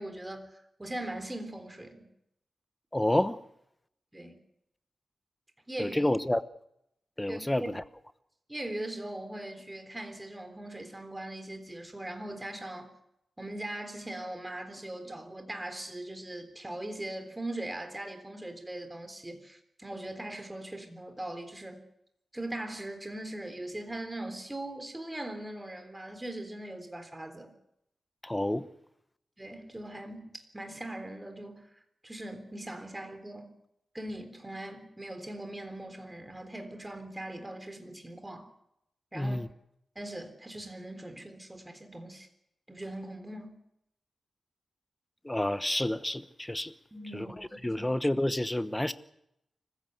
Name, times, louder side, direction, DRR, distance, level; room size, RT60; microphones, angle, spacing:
voice 1, 0.0-2.1 4.1-4.4 5.7-6.1 7.3-7.7 8.5-12.9 13.4-21.8 22.3-27.5 29.4-31.7 32.0-33.5 33.9-38.5 39.1-39.4 40.0-42.3 42.7-43.6 46.9-48.0, right 1 dB, 15° right, 3.7 m, -40 dB
voice 2, 2.9-3.4 5.8-6.4 7.2-7.6 28.2-28.7 39.1-39.5 45.2-46.7 47.1-47.3 47.6-48.9, left 1 dB, 10° left, 1.1 m, -29 dB
25.5 x 15.5 x 7.9 m
wide cardioid pair, 95°, 0 cm